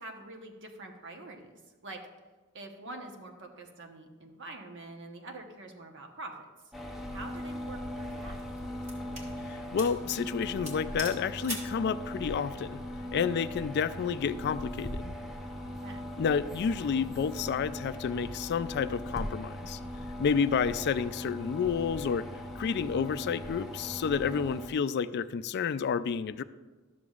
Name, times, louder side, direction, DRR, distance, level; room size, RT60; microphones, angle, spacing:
voice 1, 0.0-2.0 2.5-6.7 7.1-8.4 15.6-16.0, right 2 dB, 60° right, 3 dB, 1.0 m, -45 dB
sound 1, 6.7-24.7, equal, ahead, 0.7 m, -39 dB
sound 2, 7.1-7.4 8.1-9.3 9.8-10.0 10.3-10.4 10.7-11.8, right 1 dB, 35° right, 1.8 m, -41 dB
voice 2, 9.5-12.8 13.1-15.1 16.2-19.8 20.2-22.3 22.6-26.4, left 6 dB, 50° left, 13 dB, 0.3 m, -30 dB
12.5 x 6.9 x 2.4 m, 1.3 s
head